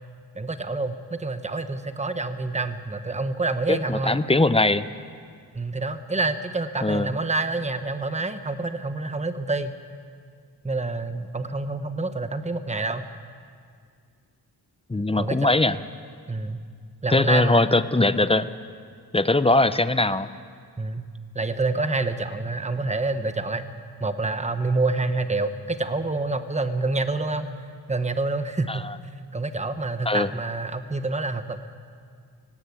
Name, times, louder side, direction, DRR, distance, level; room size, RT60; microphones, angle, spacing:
voice 1, 0.3-4.2 5.5-9.7 10.6-13.0 15.2-15.5 16.3-16.6 17.0-17.7 20.8-21.1 21.3-23.6 24.0-27.5 27.9-28.9 29.3-31.6, right 3 dB, 15° right, 9 dB, 1.0 m, -27 dB
voice 2, 3.7-4.9 6.8-7.1 14.9-15.8 17.1-18.5 19.1-20.3 28.7-28.9 30.1-30.3, left 2 dB, 15° left, 13 dB, 0.5 m, -21 dB
18.0 x 17.0 x 8.4 m, 2.1 s
wide cardioid pair, 115°, 42 cm